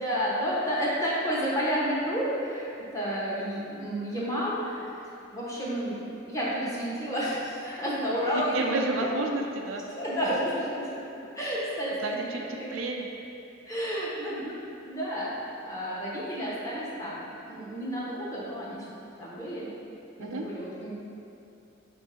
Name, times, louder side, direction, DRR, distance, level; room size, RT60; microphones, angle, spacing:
voice 1, 0.0-2.7 2.9-4.8 5.3-8.9 10.0-11.0 11.3-12.7 13.7-14.6 14.9-18.8 19.2-19.7 20.2-20.9, equal, 15° left, -8 dB, 0.9 m, -31 dB
voice 2, 8.3-9.8 12.0-13.1 20.2-20.5, right 2 dB, 85° right, 1 dB, 0.4 m, -31 dB
4.5 x 2.6 x 4.3 m, 2.8 s
head